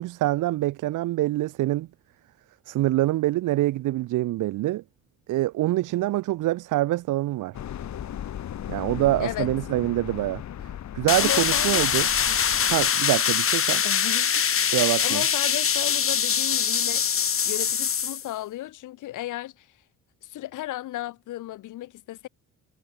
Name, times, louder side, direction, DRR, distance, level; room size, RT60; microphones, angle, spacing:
voice 1, 0.0-1.9 2.7-4.8 5.3-7.5 8.7-10.4 10.9-12.1 12.7-13.8 14.7-15.2, right 16 dB, 85° right, 1.7 m, -25 dB
sound 1, 7.5-12.9, left 10 dB, 65° left, 6.2 m, -36 dB
sound 2, 11.1-18.3, left 8 dB, 45° left, 1.9 m, -23 dB
voice 2, 11.2-11.8 12.3-12.4 13.8-19.8 20.2-22.3, left 15 dB, 85° left, 2.8 m, -35 dB
cardioid pair, 90°, 30 cm